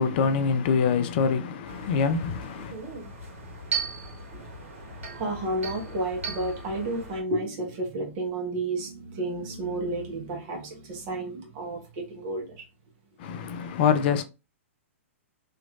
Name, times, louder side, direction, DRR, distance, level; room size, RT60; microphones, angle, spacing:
voice 1, 0.0-2.8 13.2-14.2, left 6 dB, 45° left, 0.4 m, -25 dB
sound 1, 1.7-7.2, right 4 dB, 70° right, 1.2 m, -37 dB
voice 2, 5.1-12.7, right 2 dB, 40° right, 1.0 m, -31 dB
2.9 x 2.5 x 2.4 m
figure-of-eight pair, 115°, 7 cm